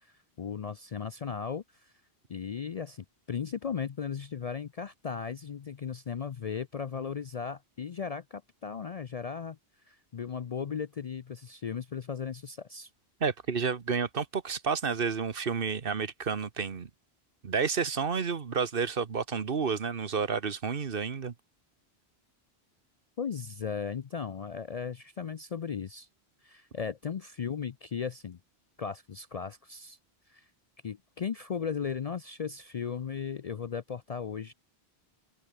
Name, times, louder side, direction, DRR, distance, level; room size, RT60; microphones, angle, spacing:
voice 1, 0.0-1.9 2.3-9.6 9.9-12.9 23.2-26.1 26.4-28.4 28.8-30.0 30.3-30.5 30.8-34.5, left 6 dB, 45° left, 0.5 m, -36 dB
voice 2, 13.2-16.9 17.4-21.3, right 6 dB, 60° right, 1.3 m, -30 dB
omnidirectional pair, 1.1 m